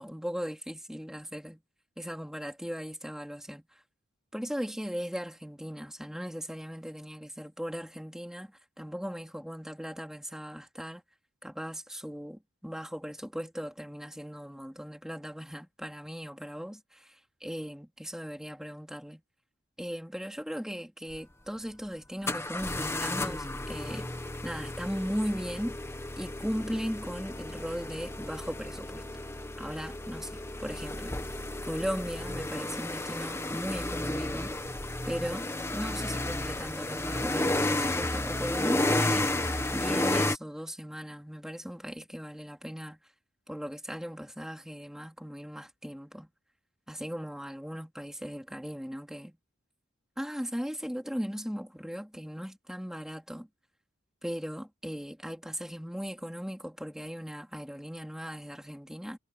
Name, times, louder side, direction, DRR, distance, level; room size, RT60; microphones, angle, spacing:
voice 1, 0.0-1.6 2.0-3.6 4.3-11.0 11.4-19.2 19.8-24.1 24.4-25.8 26.2-29.0 29.6-31.1 31.6-34.5 35.0-35.5 35.7-39.3 39.7-43.0 43.5-46.3 46.9-49.4 50.2-53.5 54.2-59.2, equal, 5° right, 3.2 m, -38 dB
sound 1, 21.1-21.2 22.3-40.4, left 1 dB, 15° left, 1.4 m, -32 dB
head